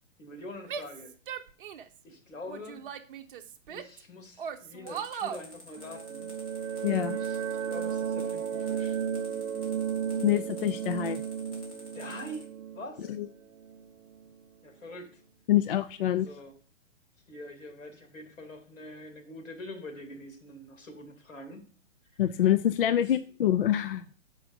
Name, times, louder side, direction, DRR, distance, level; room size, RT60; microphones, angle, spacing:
voice 1, 0.2-1.1 2.0-2.9 3.7-6.3 7.1-9.0 11.9-13.1 14.6-15.2 16.2-16.5 17.3-21.6 22.1-22.2 22.9-23.2, left 1 dB, 85° left, 3 dB, 2.8 m, -44 dB
Female speech woman speaking / Yell, 0.7-2.0 2.5-4.0 4.4-5.5, right 8 dB, 45° right, 0.8 m, -38 dB
sound 1, 4.9-12.4, left 1 dB, 30° left, 2.8 m, -50 dB
sound 2, 5.8-14.3, right 8 dB, 85° right, 0.8 m, -34 dB
voice 2, 6.8-7.2 10.2-11.2 13.1-13.3 15.5-16.3 22.2-24.0, left 11 dB, 50° left, 12 dB, 0.4 m, -26 dB
7.4 x 5.0 x 5.2 m, 0.40 s
hypercardioid pair, 150°, 38 cm